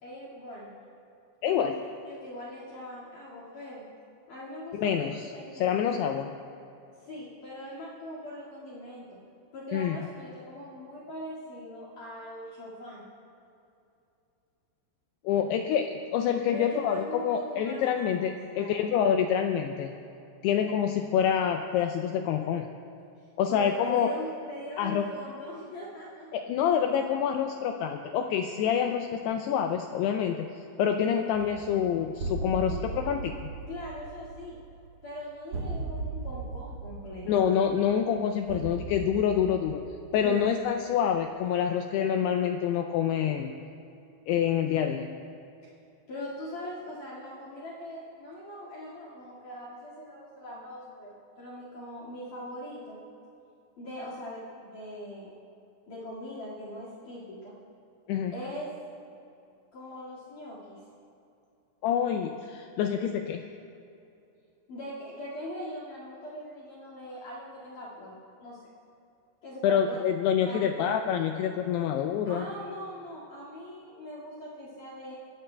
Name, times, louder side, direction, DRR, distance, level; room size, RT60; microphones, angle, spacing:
voice 1, 0.0-0.8 1.5-1.7 2.0-3.9 4.3-5.9 7.0-9.2 9.5-13.0 16.5-18.9 23.2-26.3 31.3-31.6 32.7-32.8 33.7-34.6 35.0-37.3 40.2-40.5 45.6-45.7 46.1-53.0 53.8-55.3 55.9-57.5 58.3-58.7 59.7-60.8 64.7-68.1 68.4-68.6 69.4-70.0 70.5-71.1 72.3-75.1, equal, 55° left, -7 dB, 3.2 m, -41 dB
voice 2, 1.4-1.8 4.7-5.2 5.6-6.3 9.7-10.0 15.2-20.0 20.4-22.7 23.4-24.1 24.8-25.1 26.3-30.5 30.8-33.5 37.2-39.8 40.1-43.5 44.3-45.1 58.1-58.3 61.8-63.4 69.6-72.5, left 8 dB, 85° left, 5 dB, 2.3 m, -27 dB
sound 1, 31.3-40.8, right 3 dB, 70° right, 1.7 m, -38 dB
23.5 x 16.5 x 2.3 m, 2.6 s
omnidirectional pair, 5.2 m